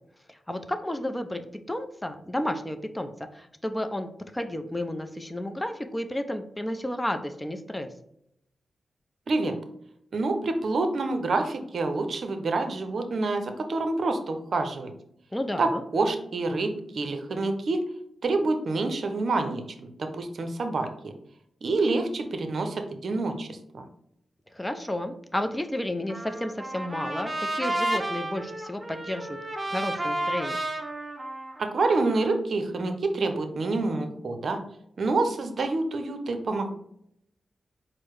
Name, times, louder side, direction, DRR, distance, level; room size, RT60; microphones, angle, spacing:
voice 1, 0.3-1.4 1.7-7.9 15.3-15.8 24.5-29.4 29.6-30.6, left 1 dB, 15° left, 7 dB, 0.5 m, -32 dB
voice 2, 10.1-14.9 15.6-17.9 18.2-21.1 21.6-23.8 31.6-34.6 35.0-36.7, right 3 dB, 65° right, 7 dB, 0.6 m, -27 dB
Trumpet, 26.1-32.3, right 1 dB, 25° right, 0.7 m, -32 dB
4.5 x 2.1 x 4.6 m, 0.74 s
cardioid pair, 50°, 0 cm